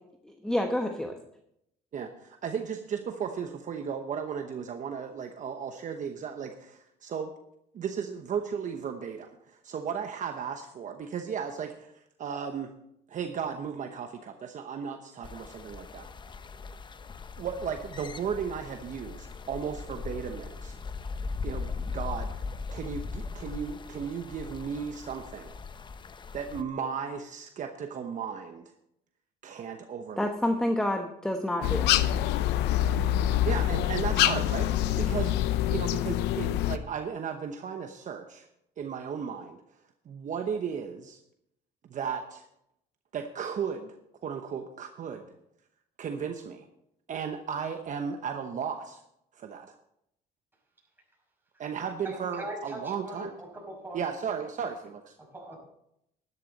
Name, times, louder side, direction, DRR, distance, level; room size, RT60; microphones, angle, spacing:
voice 1, 0.3-1.2 30.2-31.9, left 1 dB, 5° left, 5 dB, 1.0 m, -28 dB
voice 2, 1.9-7.3 7.7-12.7 13.1-16.1 17.4-20.8 21.4-22.3 22.7-25.5 26.3-28.7 29.4-30.4 33.4-35.3 35.7-38.5 38.8-39.6 40.1-41.2 41.8-42.5 43.1-44.0 44.2-45.3 46.0-46.6 47.1-49.0 49.3-49.8 51.6-53.3 53.9-55.2, right 7 dB, 50° right, 6 dB, 1.0 m, -35 dB
sound 1, 15.2-26.6, left 4 dB, 25° left, 0.7 m, -39 dB
sound 2, 31.6-36.8, left 12 dB, 90° left, 0.6 m, -25 dB
voice 3, 52.0-54.0 55.3-55.6, right 1 dB, 10° right, -1 dB, 5.6 m, -40 dB
12.5 x 11.0 x 4.1 m, 0.77 s
cardioid pair, 110°, 17 cm